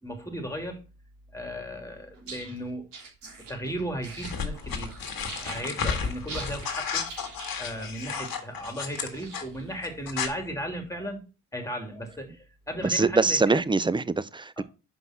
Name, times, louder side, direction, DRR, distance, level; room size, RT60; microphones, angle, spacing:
voice 1, 0.0-0.8 1.3-2.9 3.5-4.9 5.2-7.1 7.6-11.2 11.5-13.6 14.6-14.7, equal, 5° left, 3.1 m, -35 dB
sound 1, 2.1-9.7, right 4 dB, 70° right, 3.4 m, -45 dB
sound 2, 4.2-9.4 9.8-10.3, left 6 dB, 50° left, 1.8 m, -32 dB
voice 2, 12.8-14.6, right 3 dB, 10° right, 0.4 m, -23 dB
5.8 x 5.4 x 6.1 m
supercardioid pair, 60°, 44 cm